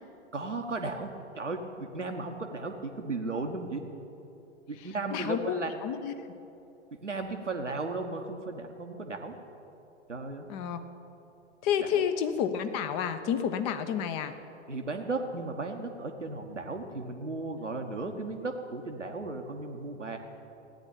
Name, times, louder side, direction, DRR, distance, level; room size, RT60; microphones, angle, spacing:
voice 1, 0.3-3.8 4.7-5.7 7.0-9.3 10.1-10.5 11.8-12.0 14.7-20.2, right 3 dB, 85° right, 3 dB, 1.3 m, -35 dB
voice 2, 5.1-5.5 5.8-6.1 10.5-10.8 11.6-14.3, left 8 dB, 35° left, 9 dB, 1.1 m, -30 dB
15.5 x 9.9 x 8.8 m, 2.9 s
figure-of-eight pair, 100°, 35 cm